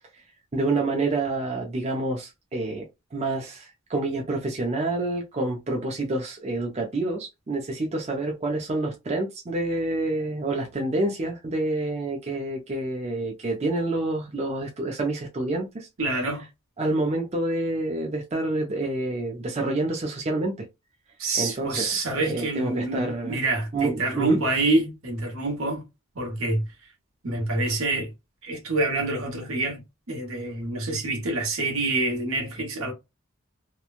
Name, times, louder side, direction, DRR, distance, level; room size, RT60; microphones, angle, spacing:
voice 1, 0.5-15.9 16.8-20.7 21.4-23.4 23.7-24.4, right 2 dB, 30° right, 0.5 m, -28 dB
voice 2, 16.0-16.4 21.2-25.8 26.1-26.6 27.2-28.1 28.4-29.8 30.1-32.9, right 2 dB, 75° right, 1.2 m, -26 dB
2.9 x 2.2 x 2.4 m
head